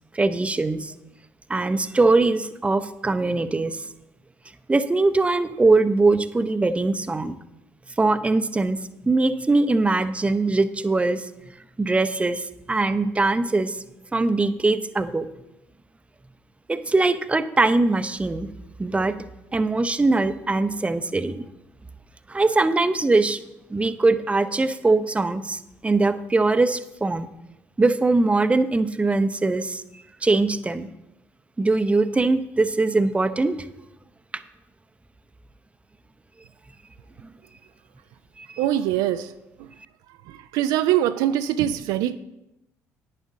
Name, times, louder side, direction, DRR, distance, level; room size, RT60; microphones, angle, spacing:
voice 1, 0.1-0.9 1.5-3.9 4.7-7.3 8.0-8.8 9.1-11.3 11.8-13.8 14.1-15.3 16.7-18.5 18.8-19.2 19.5-21.4 22.3-23.4 23.7-27.3 27.8-30.9 31.6-33.7 38.4-38.6, right 3 dB, 15° right, 13 dB, 0.7 m, -22 dB
voice 2, 38.6-39.3 39.6-39.7 40.3-42.2, right 12 dB, 65° right, 11 dB, 0.4 m, -23 dB
11.0 x 10.0 x 3.7 m, 0.90 s
figure-of-eight pair, 50°, 8 cm